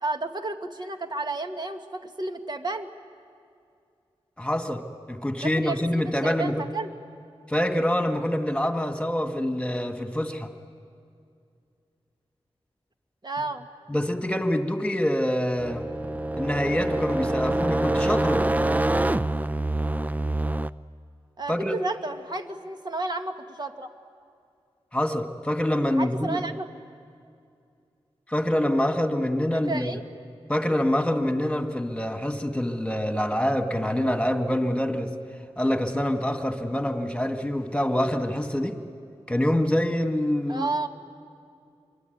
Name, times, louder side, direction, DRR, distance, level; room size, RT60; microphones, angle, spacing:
voice 1, 0.0-2.9 5.4-6.9 13.2-13.7 21.4-23.9 25.9-26.7 29.5-30.0 40.5-40.9, right 3 dB, 40° right, 5 dB, 1.8 m, -32 dB
voice 2, 4.4-4.8 5.1-6.7 7.5-10.5 13.9-15.9 16.4-18.4 21.5-21.8 24.9-26.4 28.3-30.0 30.5-35.1 35.6-38.8 39.3-40.7, left 1 dB, 10° left, 6 dB, 2.1 m, -25 dB
sound 1, 15.6-20.7, right 1 dB, 15° right, 0.6 m, -25 dB
26.0 x 23.5 x 9.4 m, 2.4 s
wide cardioid pair, 60°, 11 cm